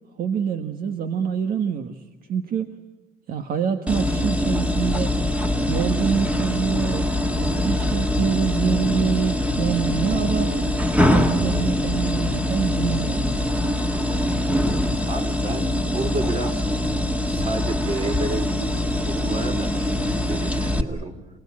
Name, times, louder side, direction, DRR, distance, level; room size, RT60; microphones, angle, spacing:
voice 1, 0.2-2.0 2.3-2.8 3.3-5.1 5.7-7.1 7.4-10.6 11.1-13.4 13.7-13.9, right 7 dB, 60° right, 7 dB, 1.6 m, -26 dB
sound 1, 3.9-20.8, left 1 dB, 10° right, 2.0 m, -23 dB
voice 2, 15.1-16.6 17.3-21.2, right 3 dB, 35° right, 7 dB, 4.1 m, -31 dB
28.5 x 19.0 x 8.7 m, 1.1 s
cardioid pair, 110°, 17 cm